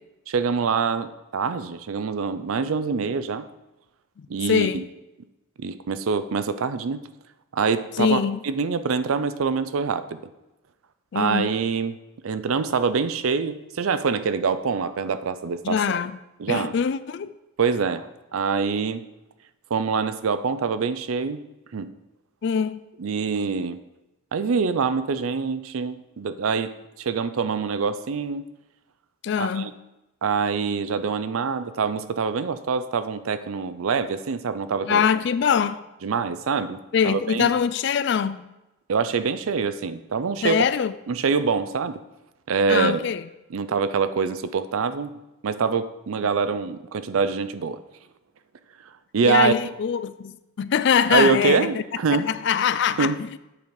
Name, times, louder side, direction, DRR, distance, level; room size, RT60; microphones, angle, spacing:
voice 1, 0.3-3.5 4.3-4.8 5.6-7.0 7.5-10.2 11.1-11.9 12.2-16.0 16.4-16.7 17.6-19.0 19.7-21.4 21.7-21.9 23.0-23.8 24.3-28.5 29.4-29.7 30.2-35.0 36.0-36.8 37.0-37.5 38.9-40.6 41.1-42.0 42.5-43.0 43.5-45.1 45.4-47.8 49.1-49.5 51.1-52.3 53.0-53.2, right 5 dB, 80° right, 0.5 m, -25 dB
voice 2, 4.2-4.9 8.0-8.4 11.1-11.5 15.6-16.2 16.5-17.3 22.4-22.8 29.2-29.7 34.8-35.9 36.9-38.4 40.4-40.9 42.7-43.2 49.2-51.8 52.1-53.4, left 7 dB, 55° left, 0.3 m, -23 dB
7.9 x 4.7 x 5.1 m
head